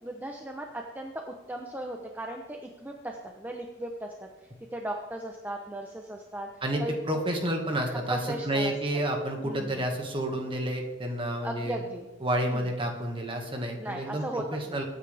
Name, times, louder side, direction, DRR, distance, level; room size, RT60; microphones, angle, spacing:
voice 1, 0.0-4.1 4.4-7.2 7.9-8.7 9.4-9.9 11.4-12.1 12.4-12.6 13.8-14.8, right 1 dB, 10° right, 2 dB, 0.8 m, -37 dB
voice 2, 6.6-11.8 12.2-14.8, right 1 dB, 25° right, 2 dB, 1.9 m, -30 dB
22.5 x 9.5 x 3.5 m, 1.2 s
head